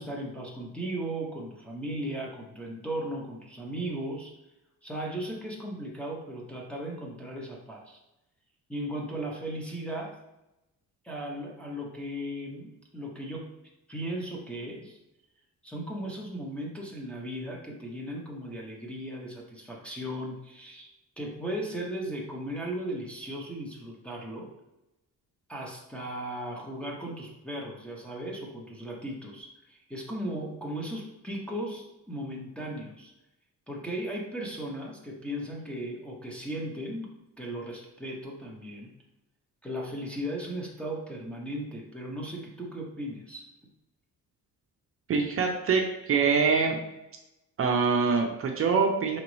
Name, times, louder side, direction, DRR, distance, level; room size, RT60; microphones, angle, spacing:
voice 1, 0.0-4.3 4.8-8.0 8.7-10.1 11.0-13.5 13.9-15.0 15.6-20.9 21.2-24.5 25.5-33.1 33.7-37.1 37.4-38.9 39.6-43.4, right 1 dB, 5° left, -4 dB, 0.6 m, -36 dB
voice 2, 45.1-46.8 47.6-49.2, right 5 dB, 45° right, 2 dB, 0.5 m, -24 dB
5.0 x 3.0 x 3.0 m, 0.92 s
cardioid pair, 170°, 31 cm